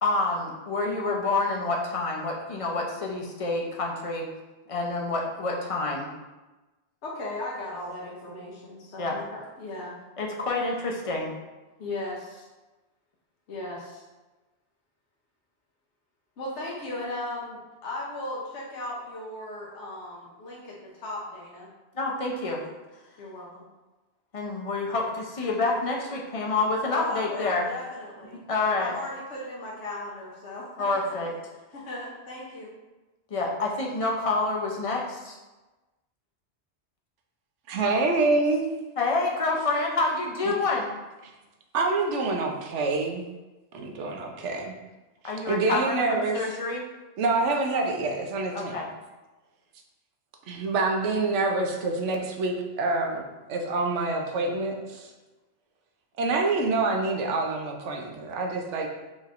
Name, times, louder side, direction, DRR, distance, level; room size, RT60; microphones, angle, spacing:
voice 1, 0.0-4.2 4.7-6.1 9.0-9.2 10.2-11.3 21.9-22.6 24.3-27.7 28.5-28.9 30.8-31.3 33.3-35.4 39.0-40.9 45.2-46.8 48.5-48.9, left 3 dB, 35° left, -1 dB, 0.6 m, -28 dB
voice 2, 7.0-10.0 11.8-12.5 13.5-14.0 16.4-21.7 22.3-22.5 23.2-23.6 26.9-31.2 31.7-32.7, left 1 dB, 80° left, -4 dB, 1.1 m, -37 dB
voice 3, 37.7-38.7 40.4-40.5 41.7-43.2 43.7-44.7 45.2-46.6 47.2-48.8 50.5-53.2 53.5-55.1 56.2-58.9, right 3 dB, 85° right, 2 dB, 1.0 m, -26 dB
5.2 x 3.2 x 2.5 m, 1.1 s
omnidirectional pair, 1.2 m